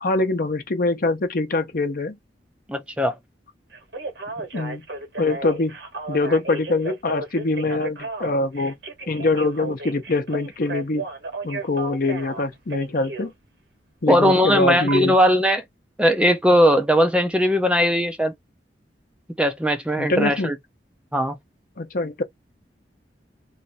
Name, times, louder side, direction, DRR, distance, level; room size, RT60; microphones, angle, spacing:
voice 1, 0.0-2.2 4.5-4.8 5.2-5.8 6.1-8.7 9.1-11.0 11.4-13.3 14.0-15.1 20.0-20.5 21.8-22.2, left 2 dB, 55° left, 0.7 m, -23 dB
voice 2, 2.7-3.2 14.1-15.6 16.0-18.3 19.4-20.6 21.1-21.4, equal, 5° right, 0.5 m, -19 dB
Telephone, 3.7-13.3 14.9-15.0, right 3 dB, 80° right, 1.4 m, -34 dB
3.1 x 2.6 x 4.0 m
head